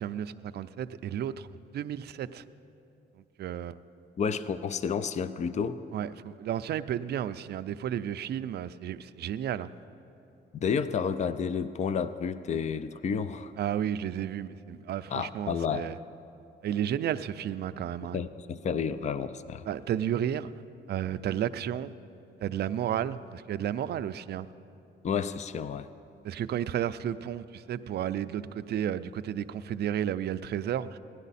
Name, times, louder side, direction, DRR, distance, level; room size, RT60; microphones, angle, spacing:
voice 1, 0.0-1.5 1.7-2.4 3.4-3.8 5.9-9.7 13.6-16.0 16.6-18.2 19.7-20.5 20.9-21.9 22.4-24.5 26.2-31.0, right 10 dB, 55° right, 13 dB, 0.4 m, -32 dB
voice 2, 4.2-5.8 10.5-13.5 15.1-15.9 18.1-19.6 25.0-25.9, left 6 dB, 35° left, 13 dB, 0.5 m, -30 dB
17.5 x 11.0 x 4.1 m, 2.8 s
cardioid pair, 90°, 20 cm